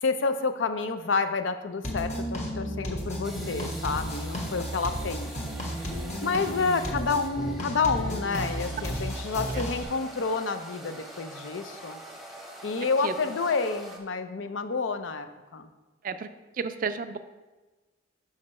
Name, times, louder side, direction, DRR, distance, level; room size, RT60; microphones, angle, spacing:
voice 1, 0.0-5.3 6.2-12.0 12.6-15.7, left 4 dB, 80° left, 9 dB, 0.5 m, -29 dB
sound 1, 1.8-9.8, equal, 35° left, 1.2 m, -33 dB
sound 2, 3.2-14.0, right 1 dB, ahead, 0.8 m, -44 dB
voice 2, 16.6-17.2, right 5 dB, 45° right, 11 dB, 0.3 m, -32 dB
6.5 x 5.9 x 4.3 m, 1.2 s
head